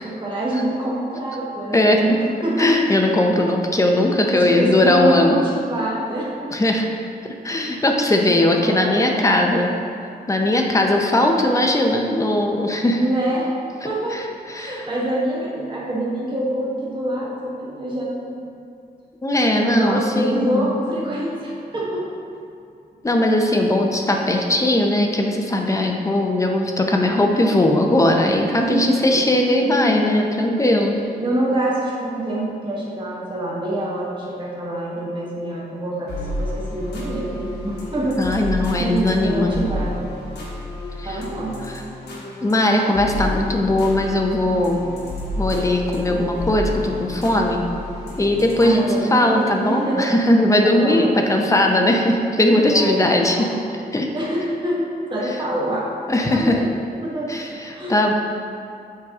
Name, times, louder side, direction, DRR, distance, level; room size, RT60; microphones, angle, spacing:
voice 1, 0.0-2.9 4.3-6.5 7.6-7.8 8.2-9.7 13.0-13.5 13.9-14.2 14.5-18.4 19.6-22.1 25.7-25.8 28.5-29.2 29.6-30.3 31.2-36.1 36.4-38.2 38.8-40.2 41.0-41.6 48.6-50.1 50.6-51.7 52.7-53.8 54.1-54.8 55.1-55.9 56.3-56.7 57.0-58.0, right 1 dB, 30° right, -6 dB, 1.2 m, -26 dB
voice 2, 2.6-5.4 6.5-6.9 7.4-9.7 10.3-13.0 14.1-14.8 19.2-20.7 23.0-31.0 38.2-39.5 41.0-41.2 41.7-41.8 42.4-44.8 45.4-47.7 48.2-48.8 49.1-53.4 53.9-54.1 56.1-56.6 57.3-58.1, left 1 dB, 20° left, 1 dB, 0.6 m, -19 dB
sound 1, 36.1-49.9, left 1 dB, 90° left, 1.2 m, -31 dB
7.4 x 4.6 x 3.6 m, 2.4 s
wide cardioid pair, 135°, 17 cm